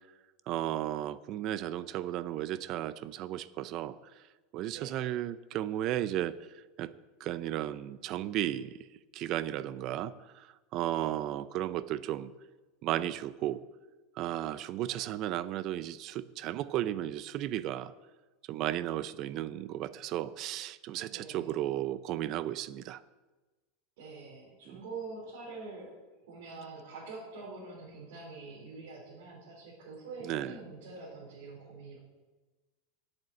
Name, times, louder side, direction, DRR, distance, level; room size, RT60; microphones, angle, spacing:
voice 1, 0.5-4.0 4.5-6.4 6.8-6.9 7.2-8.8 9.1-12.3 12.8-13.6 14.2-17.9 18.5-23.0 24.7-24.8 30.2-30.6, right 13 dB, 40° right, 16 dB, 0.5 m, -34 dB
voice 2, 21.1-21.6 24.0-25.9 26.3-32.0, right 3 dB, 75° right, -6 dB, 4.1 m, -45 dB
7.8 x 7.6 x 8.6 m, 1.2 s
supercardioid pair, 145°, 0 cm